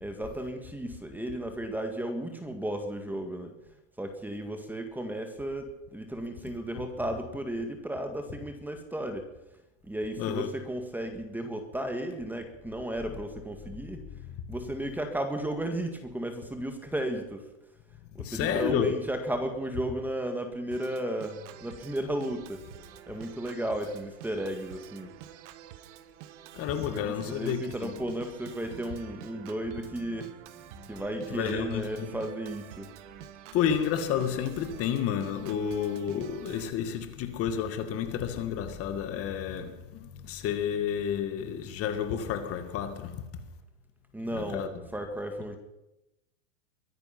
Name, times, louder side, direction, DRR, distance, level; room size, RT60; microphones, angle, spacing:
voice 1, 0.0-9.3 9.8-14.0 14.5-17.5 18.1-25.2 26.9-32.9 44.1-45.6, right 1 dB, 5° right, 1.9 m, -34 dB
voice 2, 10.2-10.5 14.5-14.6 18.2-18.9 26.5-27.9 31.3-32.1 33.5-43.3 44.3-44.7, left 8 dB, 35° left, 1.8 m, -30 dB
Organ, 20.7-36.7, right 12 dB, 65° right, 1.4 m, -48 dB
22.5 x 10.5 x 5.9 m
supercardioid pair, 130°, 39 cm